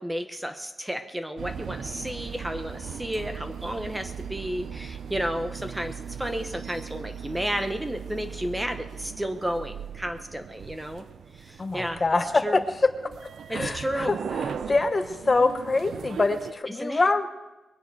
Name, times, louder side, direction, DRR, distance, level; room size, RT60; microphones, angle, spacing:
voice 1, 0.0-11.0 11.3-12.6 13.5-14.2 16.7-17.1, equal, 10° right, 7 dB, 0.9 m, -32 dB
sound 1, 1.4-16.5, right 7 dB, 70° right, 0.6 m, -38 dB
voice 2, 11.6-12.6 13.5-17.3, left 3 dB, 30° left, 8 dB, 1.1 m, -25 dB
22.0 x 10.0 x 4.8 m, 1.1 s
cardioid pair, 105°, 0 cm